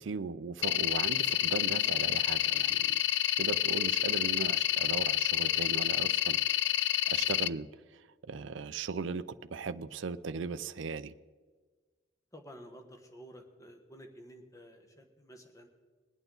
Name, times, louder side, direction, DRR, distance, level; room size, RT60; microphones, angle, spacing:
voice 1, 0.0-3.0 3.4-6.4 7.1-7.7 8.2-11.1, right 4 dB, 85° right, 13 dB, 0.5 m, -37 dB
sound 1, 0.6-7.5, left 14 dB, 65° left, 0.3 m, -29 dB
voice 2, 12.3-15.7, equal, 15° left, 3 dB, 1.4 m, -52 dB
22.0 x 9.1 x 3.9 m, 1.4 s
head